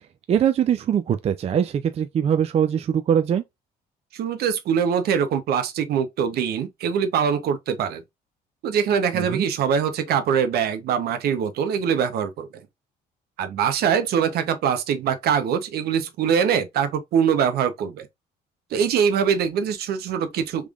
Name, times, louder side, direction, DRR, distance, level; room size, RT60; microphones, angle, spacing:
voice 1, 0.3-3.4 9.1-9.5, right 8 dB, 40° right, 0.4 m, -22 dB
voice 2, 4.1-8.0 8.6-12.5 13.4-18.1 18.7-20.7, right 7 dB, 70° right, 0.8 m, -23 dB
3.5 x 3.4 x 2.4 m
cardioid pair, 110°, 17 cm